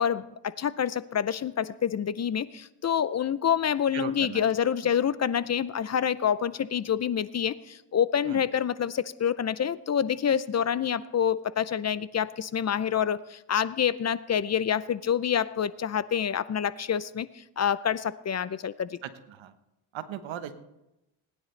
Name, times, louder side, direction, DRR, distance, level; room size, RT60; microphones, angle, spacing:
voice 1, 0.0-19.0, left 8 dB, 35° left, 17 dB, 0.5 m, -27 dB
voice 2, 3.9-4.5 4.8-4.9 8.3-8.4 19.0-19.5 19.9-20.5, right 9 dB, 85° right, 10 dB, 1.2 m, -38 dB
20.0 x 10.0 x 3.3 m, 0.94 s
cardioid pair, 80°, 46 cm